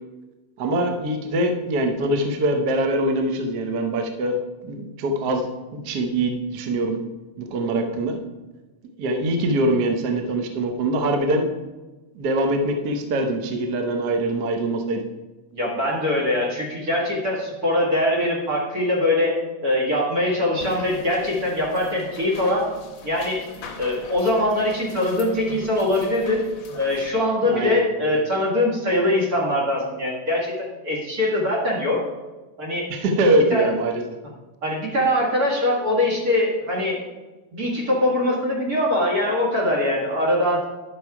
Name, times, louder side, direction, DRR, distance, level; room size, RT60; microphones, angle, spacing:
voice 1, 0.6-7.0 7.4-8.2 9.0-11.5 12.1-15.0 27.5-27.8 28.1-28.2 32.9-34.0, right 1 dB, 80° right, 4 dB, 0.9 m, -23 dB
voice 2, 15.5-22.7 23.0-23.4 23.8-26.4 26.7-32.0 32.6-32.8 33.2-33.7 34.6-37.0 37.5-40.6, left 1 dB, 40° right, -3 dB, 1.6 m, -22 dB
sound 1, 20.6-27.1, left 4 dB, 60° left, 1.3 m, -41 dB
10.5 x 6.4 x 4.7 m, 1.2 s
omnidirectional pair, 3.3 m